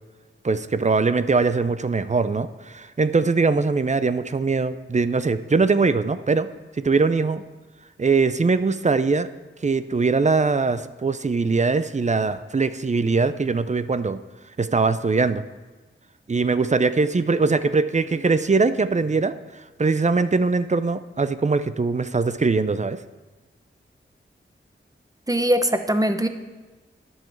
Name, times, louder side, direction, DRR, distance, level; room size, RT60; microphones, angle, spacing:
voice 1, 0.4-6.5 6.8-7.4 8.0-9.3 9.6-14.2 14.6-15.4 16.3-19.4 19.8-23.0, right 4 dB, 35° right, 13 dB, 0.5 m, -21 dB
voice 2, 25.3-26.3, right 1 dB, 15° right, 8 dB, 0.9 m, -21 dB
10.5 x 5.6 x 7.1 m, 1.2 s
cardioid pair, 45°, 21 cm